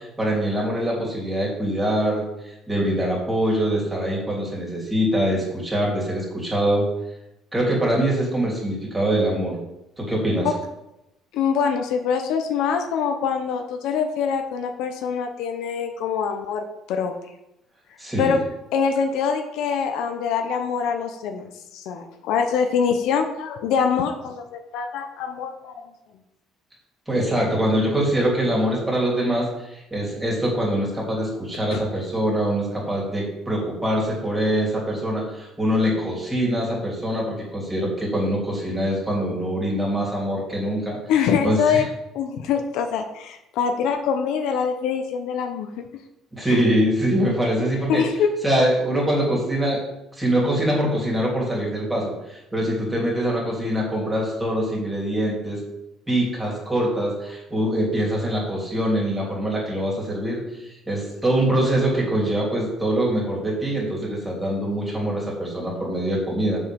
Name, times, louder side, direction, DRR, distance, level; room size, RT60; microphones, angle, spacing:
voice 1, 0.0-6.9 7.5-9.6 10.0-10.5 18.0-18.4 27.1-41.0 41.4-41.8 46.3-48.0 48.4-49.8 50.1-55.6 56.1-66.6, right 1 dB, 10° right, -3 dB, 3.0 m, -24 dB
voice 2, 11.3-17.1 18.2-18.4 18.7-25.7 31.7-31.9 41.1-41.9 42.1-45.9 46.5-46.6 47.9-48.3, left 6 dB, 75° left, 5 dB, 1.0 m, -24 dB
7.3 x 5.5 x 7.0 m, 0.89 s
cardioid pair, 160°, 0 cm